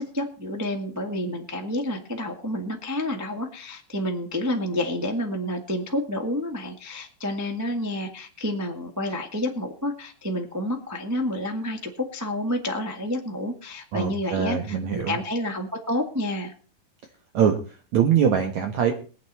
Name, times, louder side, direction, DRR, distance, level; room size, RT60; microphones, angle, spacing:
voice 1, 0.0-16.5, left 1 dB, 10° right, 2 dB, 0.7 m, -29 dB
voice 2, 13.9-15.1 17.3-18.9, right 8 dB, 60° right, 4 dB, 2.4 m, -23 dB
23.0 x 8.3 x 4.3 m, 0.37 s
omnidirectional pair, 4.2 m